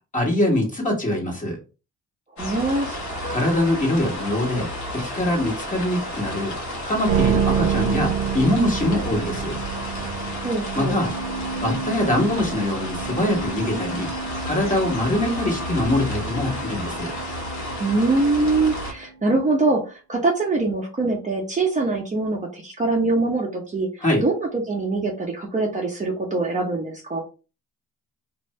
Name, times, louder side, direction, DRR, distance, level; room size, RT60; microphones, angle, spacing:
voice 1, 0.1-1.6 3.3-6.6 6.8-9.6 10.7-11.1 11.6-14.1 14.4-17.1 24.0-24.2, left 1 dB, 25° left, -1 dB, 1.5 m, -23 dB
sound 1, 2.4-18.9, left 1 dB, 70° left, 1.2 m, -32 dB
voice 2, 2.4-3.3 10.4-11.0 17.8-23.9 24.2-27.2, right 3 dB, 25° right, -1 dB, 0.8 m, -23 dB
sound 2, 7.1-19.4, right 7 dB, 90° right, 0.5 m, -29 dB
2.6 x 2.6 x 3.2 m, 0.32 s
cardioid pair, 90°, 30 cm